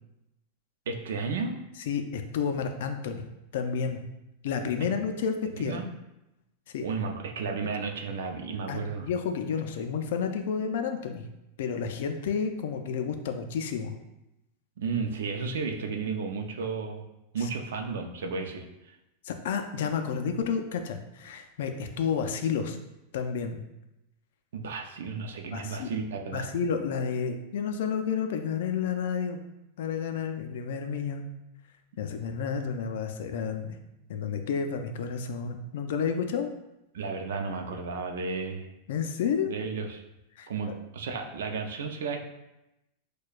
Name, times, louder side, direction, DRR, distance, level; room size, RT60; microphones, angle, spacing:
voice 1, 0.9-1.6 4.8-4.9 5.5-5.9 6.8-9.1 14.8-17.0 17.3-18.7 24.5-26.5 36.9-38.7 39.4-40.0 40.5-42.2, right 4 dB, 90° right, 4 dB, 0.5 m, -33 dB
voice 2, 1.9-3.2 3.5-4.0 4.4-5.8 6.7-6.8 8.7-11.3 11.6-13.9 17.4-17.5 19.2-22.8 23.1-23.6 25.5-25.9 26.3-29.4 29.8-31.3 32.0-33.8 34.1-36.5 38.9-39.5 40.4-40.5, left 6 dB, 60° left, 6 dB, 0.4 m, -30 dB
6.3 x 2.2 x 2.4 m, 0.91 s
supercardioid pair, 175°, 0 cm